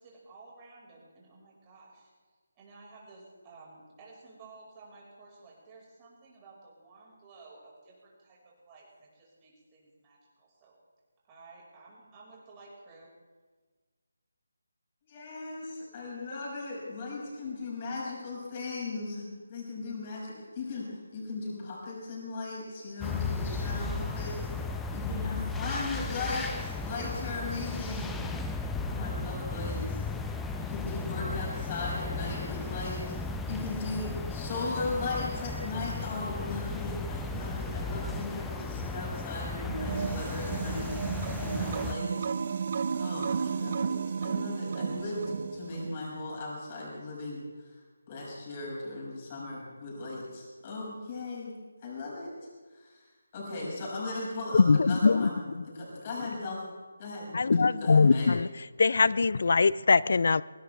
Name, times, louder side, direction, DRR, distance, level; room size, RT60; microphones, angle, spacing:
voice 1, 0.0-2.1 2.6-10.8 11.3-13.2, right 3 dB, 20° right, -4 dB, 5.7 m, -54 dB
voice 2, 15.1-28.2 28.8-30.0 30.6-42.3 42.9-44.0 44.2-47.8 48.1-51.5 51.8-52.3 52.7-53.0 53.3-56.6 57.0-58.3, left 2 dB, 30° left, -4 dB, 6.8 m, -37 dB
sound 1, 23.0-41.9, left 3 dB, 5° left, 0.7 m, -35 dB
sound 2, 39.7-46.0, right 6 dB, 45° right, 0.6 m, -33 dB
voice 3, 54.5-55.3 57.3-58.5 58.8-60.4, left 4 dB, 55° left, 19 dB, 0.5 m, -22 dB
24.0 x 17.0 x 3.5 m, 1.4 s
figure-of-eight pair, 155°, 0 cm